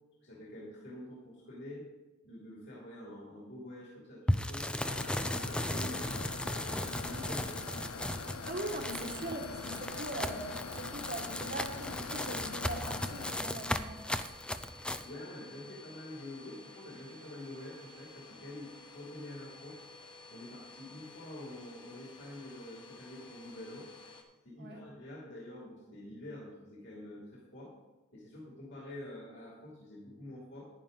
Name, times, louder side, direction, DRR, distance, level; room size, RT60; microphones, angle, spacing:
voice 1, 0.2-1.9 2.2-6.1 6.5-7.6 15.0-19.8 20.3-23.9 24.4-27.7 28.1-30.7, left 1 dB, 55° left, -4 dB, 2.6 m, -47 dB
sound 1, 4.3-15.1, left 1 dB, 5° left, 0.3 m, -36 dB
sound 2, 4.8-13.3, left 4 dB, 80° left, 0.6 m, -44 dB
Domestic sounds home sounds, 6.5-24.2, left 2 dB, 20° left, 1.2 m, -53 dB
voice 2, 8.3-10.5 10.7-14.3 24.6-24.8, right 1 dB, 50° right, 2 dB, 1.7 m, -41 dB
10.5 x 10.0 x 3.9 m, 1.2 s
head